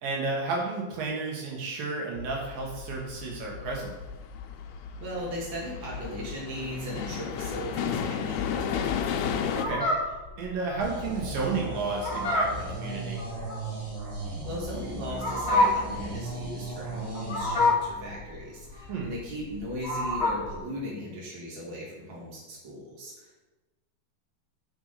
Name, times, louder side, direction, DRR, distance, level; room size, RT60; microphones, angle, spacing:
voice 1, 0.0-3.9 9.5-9.9 10.4-13.2 18.9-19.1, right 3 dB, 80° right, -2 dB, 3.1 m, -32 dB
sound 1, 2.2-9.7, left 7 dB, 75° left, 2.0 m, -33 dB
voice 2, 5.0-8.9 14.4-23.4, equal, 40° right, -5 dB, 2.8 m, -37 dB
Fowl, 9.5-20.6, left 2 dB, 40° left, 0.9 m, -29 dB
sound 2, 10.8-17.7, right 2 dB, 55° right, 4.0 m, -37 dB
7.1 x 5.2 x 6.7 m, 1.2 s
omnidirectional pair, 4.0 m